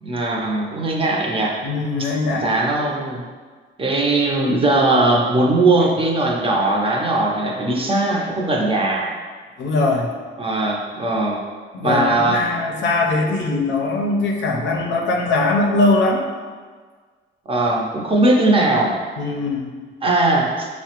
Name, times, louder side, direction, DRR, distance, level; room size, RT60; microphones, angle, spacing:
voice 1, 0.0-1.6 2.0-2.1 2.4-3.2 3.8-9.1 10.4-11.4 11.8-12.5 17.5-19.0 20.0-20.7, right 2 dB, 25° right, -1 dB, 0.6 m, -19 dB
voice 2, 1.6-2.5 9.6-10.1 11.7-16.2 19.2-19.7, left 2 dB, 70° left, 1 dB, 0.5 m, -21 dB
4.7 x 2.1 x 2.9 m, 1.5 s
cardioid pair, 90°, 20 cm